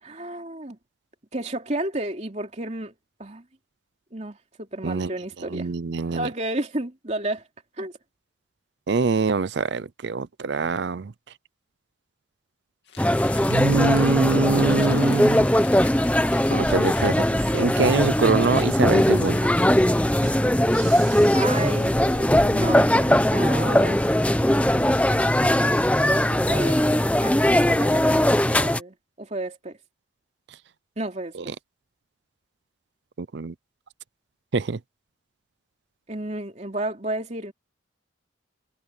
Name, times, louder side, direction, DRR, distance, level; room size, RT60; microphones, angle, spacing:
voice 1, 0.0-0.8 1.3-2.9 3.2-3.4 4.1-5.7 6.1-7.4 7.8-7.9 21.3-24.1 24.7-25.0 26.1-26.8 27.2-29.8 31.0-31.5 36.1-37.5, right 1 dB, 35° right, 3.0 m, -32 dB
voice 2, 4.8-6.3 8.9-11.1 13.5-15.5 16.5-17.2 17.5-19.6 31.3-31.5 33.2-33.5 34.5-34.8, right 4 dB, 60° right, 0.5 m, -24 dB
Crumpling crinkling, 12.9-20.5, left 7 dB, 60° left, 2.6 m, -45 dB
sound 1, 13.0-28.8, left 1 dB, 5° left, 0.8 m, -20 dB
sound 2, 20.1-22.9, right 8 dB, 80° right, 3.0 m, -44 dB
head